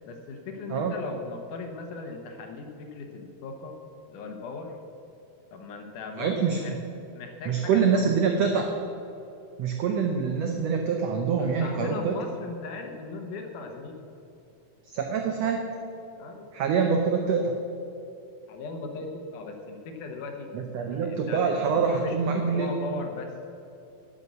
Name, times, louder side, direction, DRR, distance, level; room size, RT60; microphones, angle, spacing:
voice 1, 0.1-3.8 4.1-4.7 5.5-6.7 7.1-8.6 11.4-14.0 16.2-16.5 18.5-20.5 20.9-23.3, left 3 dB, 70° left, 4 dB, 2.3 m, -38 dB
voice 2, 6.2-6.8 7.5-8.7 9.6-12.2 14.9-15.7 16.5-17.5 20.5-22.7, right 6 dB, 85° right, 3 dB, 1.4 m, -25 dB
11.0 x 6.3 x 8.0 m, 2.7 s
omnidirectional pair, 4.0 m